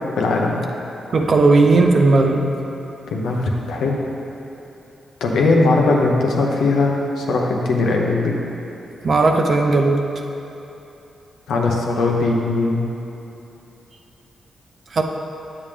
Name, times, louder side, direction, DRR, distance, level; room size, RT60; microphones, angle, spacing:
voice 1, 0.2-0.6 3.1-4.0 5.2-8.3 11.5-12.9, left 3 dB, 85° left, -1 dB, 0.9 m, -19 dB
voice 2, 1.1-2.5 9.0-10.0 14.9-15.0, right 3 dB, 55° right, 3 dB, 0.7 m, -15 dB
8.8 x 7.2 x 3.4 m, 3.0 s
cardioid pair, 65°, 0 cm